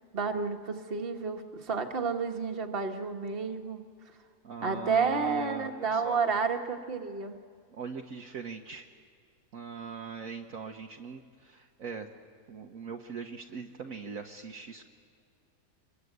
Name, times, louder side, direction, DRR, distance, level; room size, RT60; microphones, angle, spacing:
voice 1, 0.1-3.8 4.6-7.4, right 5 dB, 35° right, 4 dB, 1.5 m, -30 dB
voice 2, 4.4-6.2 7.7-8.9 9.5-12.1 12.5-14.8, right 6 dB, 60° right, 2 dB, 1.3 m, -41 dB
26.5 x 22.0 x 8.1 m, 2.1 s
omnidirectional pair, 1.8 m